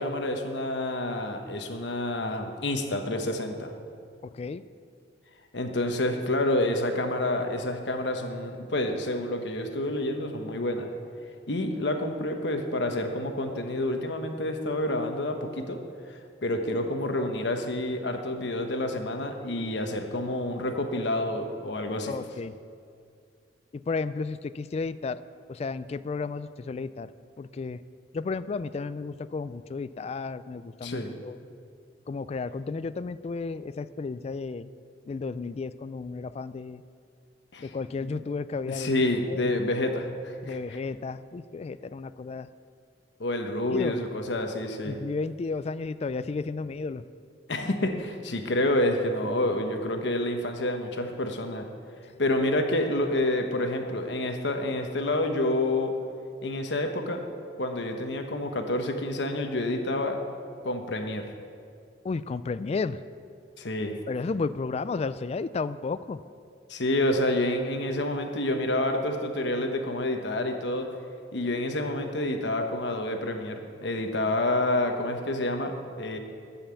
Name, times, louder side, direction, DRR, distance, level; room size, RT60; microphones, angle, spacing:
voice 1, 0.0-3.7 5.5-10.9 11.5-15.8 16.1-22.1 30.8-31.1 37.5-37.7 38.0-38.1 38.7-40.6 43.2-45.0 47.5-51.7 52.2-55.9 56.4-57.2 57.6-60.2 60.6-61.3 63.6-64.0 66.7-70.9 71.3-76.2, left 1 dB, 75° left, 5 dB, 1.1 m, -28 dB
voice 2, 22.1-22.5 23.7-25.2 25.5-27.1 27.4-27.8 28.1-31.4 32.1-34.7 35.1-36.8 37.6-38.9 39.3-39.5 40.4-42.5 43.7-44.0 44.9-47.0 62.0-63.0 64.1-66.2, left 4 dB, 35° left, 15 dB, 0.3 m, -33 dB
14.5 x 5.7 x 7.0 m, 2.3 s
head